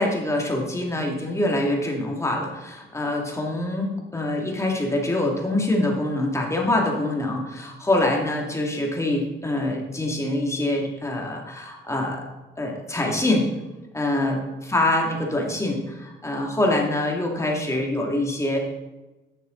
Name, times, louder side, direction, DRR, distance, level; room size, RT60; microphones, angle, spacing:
voice 1, 0.0-12.2 12.6-13.5 13.9-14.4 14.7-18.6, left 1 dB, 15° left, -1 dB, 2.2 m, -25 dB
9.9 x 6.6 x 3.9 m, 1.1 s
cardioid pair, 90°, 20 cm